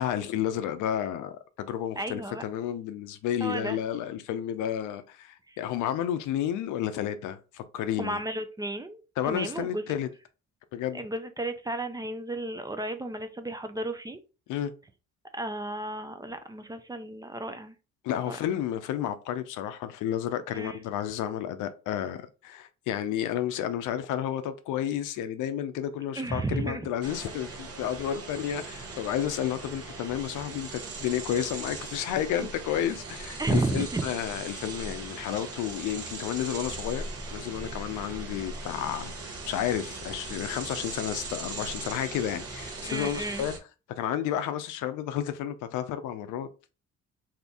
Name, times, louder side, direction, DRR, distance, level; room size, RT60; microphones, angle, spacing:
voice 1, 0.0-8.2 9.2-10.1 10.7-11.0 14.5-14.7 18.0-37.0 37.3-43.6 44.0-46.5, left 10 dB, 90° left, 0.5 m, -31 dB
voice 2, 2.0-2.4 3.4-3.8 5.5-5.6 8.0-9.8 10.9-14.2 15.3-17.7 18.3-18.4 20.5-20.8 26.2-26.8 32.4-32.5 33.4-34.0 42.8-43.5, right 2 dB, 15° right, 0.4 m, -33 dB
sound 1, 27.0-43.6, right 3 dB, 50° right, 0.9 m, -39 dB
2.8 x 2.5 x 3.5 m
cardioid pair, 90°, 30 cm